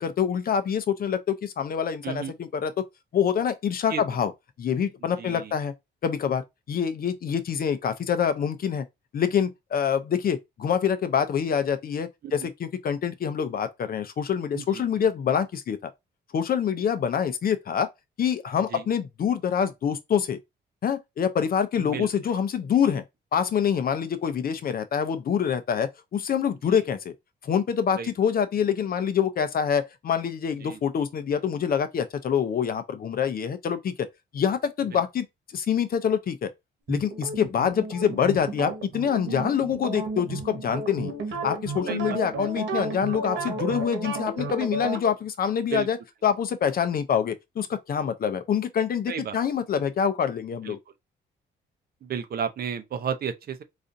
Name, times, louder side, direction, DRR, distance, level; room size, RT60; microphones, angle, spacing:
voice 1, 0.0-2.8 3.1-4.3 4.6-5.7 6.0-8.9 9.1-15.8 16.3-17.9 18.2-20.4 20.8-23.0 23.3-27.1 27.4-34.1 34.3-35.3 35.5-36.5 36.9-41.1 41.4-50.8, left 7 dB, 50° left, 0.6 m, -26 dB
voice 2, 2.0-2.3 3.9-4.0 5.2-5.5 12.2-12.3 14.5-14.8 18.7-18.8 21.9-22.1 28.0-28.1 30.6-30.8 41.9-42.2 45.7-45.9 49.1-49.4 50.7-50.8 52.0-53.6, right 7 dB, 50° right, 0.6 m, -32 dB
sound 1, 36.9-45.0, right 3 dB, 70° right, 1.2 m, -33 dB
4.0 x 2.5 x 2.6 m
cardioid pair, 90°, 20 cm